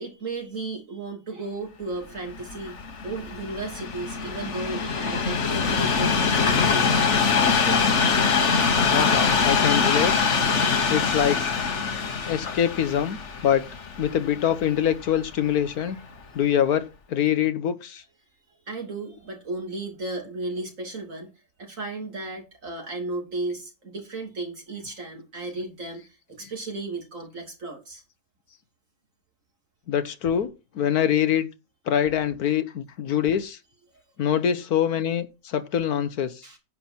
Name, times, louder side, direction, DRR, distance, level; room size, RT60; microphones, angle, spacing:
voice 1, 0.0-2.8 3.0-7.0 7.6-8.0 12.0-12.1 12.4-12.5 15.4-15.9 16.3-16.4 18.7-21.3 21.6-28.0 36.4-36.6, right 2 dB, 55° right, 3.5 m, -35 dB
Train, 2.2-15.4 16.1-16.2, left 5 dB, 50° left, 1.5 m, -23 dB
voice 2, 8.9-10.1 10.9-11.4 12.2-13.7 14.0-16.0 16.3-18.0 29.9-31.5 31.9-33.6 34.2-36.4, left 9 dB, 75° left, 1.5 m, -24 dB
10.0 x 7.4 x 4.4 m
omnidirectional pair, 1.6 m